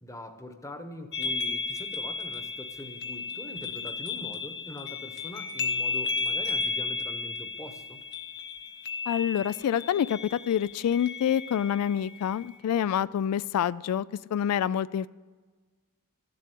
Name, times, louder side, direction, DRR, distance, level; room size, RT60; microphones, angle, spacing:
voice 1, 0.0-8.0, left 1 dB, 15° left, 7 dB, 1.0 m, -43 dB
sound 1, 1.1-12.6, left 4 dB, 55° left, 1.1 m, -34 dB
voice 2, 9.1-14.1 14.3-15.1, left 9 dB, 90° left, 17 dB, 0.3 m, -27 dB
14.0 x 7.7 x 8.3 m, 1.4 s
head